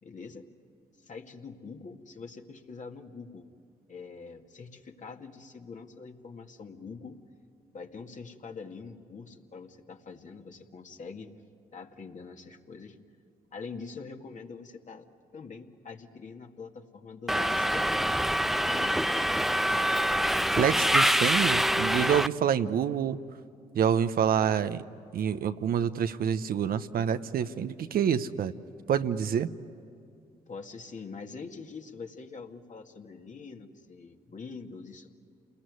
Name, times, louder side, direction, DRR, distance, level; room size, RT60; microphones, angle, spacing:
voice 1, 0.0-0.5 1.0-3.5 3.9-7.2 7.7-11.4 11.7-13.0 13.5-15.1 15.3-18.2 18.6-19.1 30.5-35.1, left 4 dB, 50° left, 3 dB, 2.1 m, -44 dB
Subway metro underground, 17.3-22.3, equal, ahead, 0.6 m, -25 dB
voice 2, 20.6-23.2 23.7-24.8 25.1-28.5 28.9-29.5, right 8 dB, 70° right, 10 dB, 0.9 m, -27 dB
29.0 x 20.5 x 9.6 m, 2.5 s
supercardioid pair, 55°, 16 cm